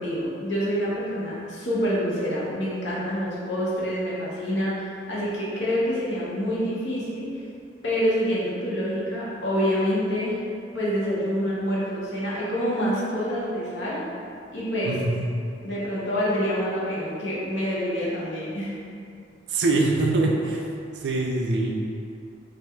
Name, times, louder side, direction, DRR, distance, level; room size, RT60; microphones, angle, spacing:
voice 1, 0.0-7.3 7.8-10.4 10.7-14.0 14.5-15.0 15.6-18.7, equal, 75° left, -7 dB, 0.8 m, -27 dB
voice 2, 19.5-20.7 21.0-21.7, right 2 dB, 65° right, 0 dB, 0.4 m, -23 dB
4.3 x 2.4 x 2.3 m, 2.5 s
head